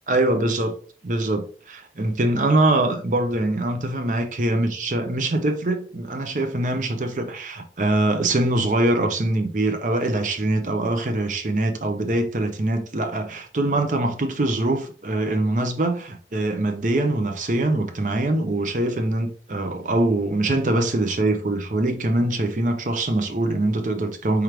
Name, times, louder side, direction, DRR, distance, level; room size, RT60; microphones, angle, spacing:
voice 1, 0.1-0.7 1.0-24.4, right 2 dB, 45° right, 0.6 m, -23 dB
4.9 x 3.1 x 3.3 m
head